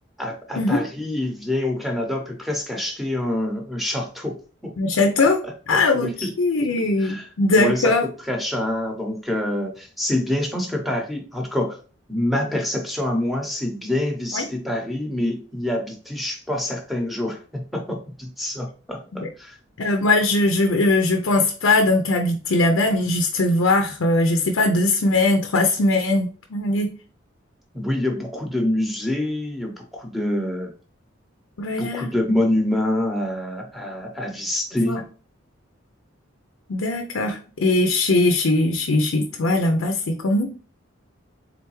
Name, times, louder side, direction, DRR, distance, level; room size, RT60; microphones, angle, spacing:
voice 1, 0.2-4.4 4.6-4.7 5.2-5.3 5.7-6.1 7.0-7.3 7.6-7.9 8.3-11.8 12.1-19.6 27.7-30.7 31.7-35.0, left 1 dB, ahead, 2 dB, 0.8 m, -26 dB
voice 2, 4.8-5.4 5.7-8.0 14.3-14.5 19.1-19.3 19.8-26.9 31.6-32.1 34.8-35.0 36.7-40.5, left 2 dB, 90° left, 4 dB, 0.5 m, -20 dB
3.8 x 3.4 x 3.0 m, 0.38 s
head